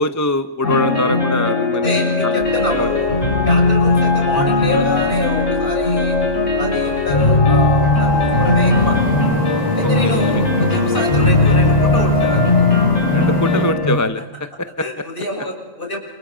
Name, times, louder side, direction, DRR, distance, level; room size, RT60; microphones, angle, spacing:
voice 1, 0.0-2.4 2.7-2.9 9.8-10.4 13.1-14.8, left 2 dB, 15° left, 10 dB, 0.7 m, -23 dB
sound 1, 0.6-14.0, left 2 dB, 80° left, 5.4 m, -17 dB
voice 2, 1.8-3.1 3.5-6.2 6.5-9.0 9.7-12.5 14.8-16.0, left 1 dB, 45° left, 0 dB, 7.2 m, -26 dB
sound 2, 2.4-13.7, left 1 dB, 30° right, 4.9 m, -25 dB
29.0 x 28.0 x 5.1 m, 1.2 s
omnidirectional pair, 1.3 m